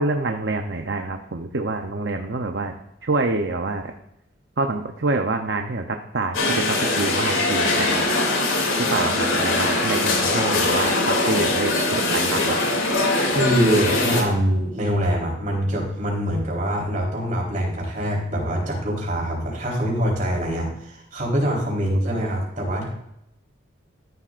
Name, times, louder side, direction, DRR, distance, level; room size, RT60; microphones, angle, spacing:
voice 1, 0.0-2.7 3.0-3.9 4.6-8.1 8.8-12.6, right 3 dB, 55° right, 4 dB, 0.7 m, -26 dB
sound 1, 6.3-14.2, left 2 dB, 75° left, 2.7 m, -22 dB
voice 2, 13.2-22.9, equal, 40° right, -2 dB, 4.0 m, -24 dB
13.5 x 11.5 x 2.5 m, 0.80 s
head